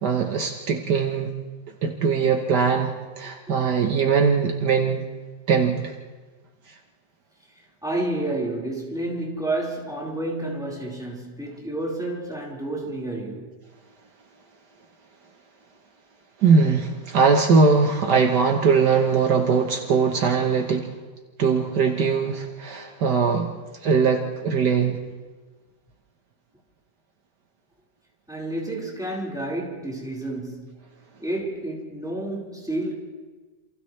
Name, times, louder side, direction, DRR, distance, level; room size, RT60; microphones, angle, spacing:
voice 1, 0.0-1.3 1.8-2.9 3.2-5.0 5.5-5.9 16.4-20.9 21.4-23.5 23.8-25.0, right 5 dB, 70° right, 1.8 m, -21 dB
voice 2, 7.8-13.5 28.3-30.8 31.2-32.9, right 1 dB, ahead, 4.6 m, -30 dB
28.5 x 28.0 x 3.3 m
omnidirectional pair, 1.9 m